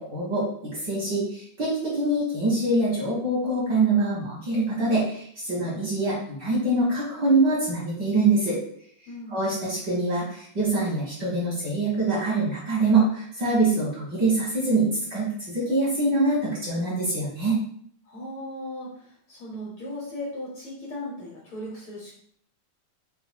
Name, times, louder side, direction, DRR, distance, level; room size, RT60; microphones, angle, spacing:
voice 1, 0.0-8.6 9.3-17.6, right 2 dB, 50° right, -7 dB, 1.4 m, -24 dB
voice 2, 9.1-9.5 18.0-22.1, left 1 dB, 80° left, -4 dB, 1.2 m, -37 dB
7.2 x 2.5 x 2.2 m, 0.63 s
omnidirectional pair, 3.5 m